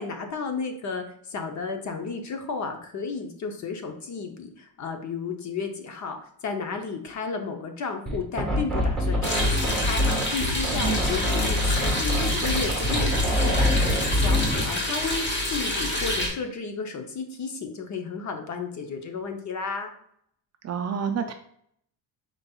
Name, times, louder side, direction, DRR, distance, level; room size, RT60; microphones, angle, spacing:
voice 1, 0.0-13.1 13.4-19.9, left 4 dB, 45° left, 5 dB, 0.7 m, -33 dB
sound 1, 8.1-14.7, left 1 dB, ahead, 1.3 m, -25 dB
sound 2, 9.2-16.3, left 1 dB, 25° left, 1.1 m, -28 dB
voice 2, 20.6-21.3, right 7 dB, 40° right, 6 dB, 0.4 m, -28 dB
5.2 x 4.0 x 2.3 m, 0.68 s
cardioid pair, 135°, 42 cm